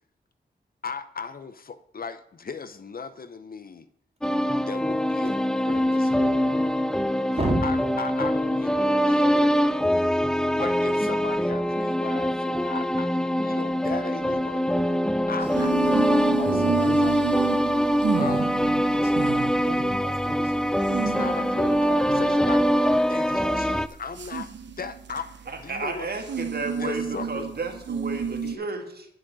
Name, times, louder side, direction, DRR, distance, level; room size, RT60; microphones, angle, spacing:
voice 1, 0.8-3.9 4.6-6.8 7.6-9.7 10.6-14.6 15.3-17.2 18.1-18.5 21.0-24.5 24.8-26.1 26.8-27.5 28.4-28.7, left 5 dB, 55° left, 12 dB, 0.7 m, -37 dB
sound 1, 4.2-23.9, equal, 5° left, 0.4 m, -23 dB
voice 2, 7.3-7.6 15.5-15.8 16.1-17.6 18.3-18.5 18.9-20.7 22.9-23.0, right 2 dB, 35° right, 0 dB, 3.0 m, -33 dB
sound 2, 15.4-28.6, right 6 dB, 85° right, 0.8 m, -32 dB
voice 3, 25.5-29.1, right 3 dB, 60° right, 4 dB, 1.8 m, -33 dB
10.5 x 6.4 x 6.2 m, 0.76 s
wide cardioid pair, 95°, 18 cm